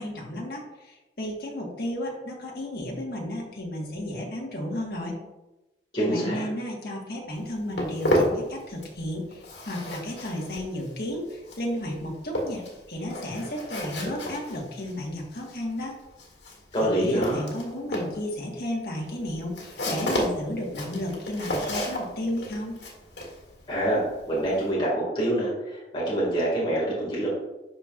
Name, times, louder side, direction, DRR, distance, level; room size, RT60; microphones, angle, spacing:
voice 1, 0.0-5.1 6.0-12.6 12.9-16.0 16.8-22.8, left 1 dB, 60° left, -2 dB, 1.6 m, -33 dB
voice 2, 5.9-6.5 16.7-17.5 23.7-27.3, right 1 dB, 30° left, -6 dB, 2.1 m, -26 dB
Walk footsteps, 7.3-9.1 9.3-24.7, equal, 85° left, 2.0 m, -32 dB
12.0 x 4.4 x 2.5 m, 1.0 s
head